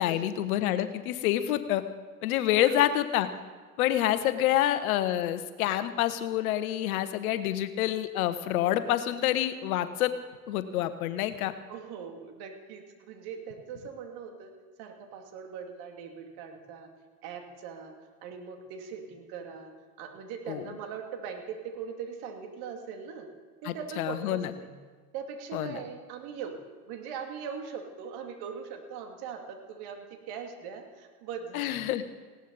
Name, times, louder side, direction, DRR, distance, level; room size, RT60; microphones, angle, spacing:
voice 1, 0.0-1.8 2.2-3.3 3.8-10.1 10.5-11.5 20.5-20.6 23.6-24.5 25.5-25.8 31.5-32.0, left 12 dB, 65° left, 11 dB, 1.3 m, -27 dB
voice 2, 11.7-14.5 14.8-16.9 17.2-17.9 18.2-19.7 20.0-23.3 23.6-24.8 25.1-26.6 26.9-32.0, right 6 dB, 55° right, 3 dB, 2.8 m, -41 dB
19.0 x 17.0 x 4.2 m, 1.4 s
hypercardioid pair, 80°, 46 cm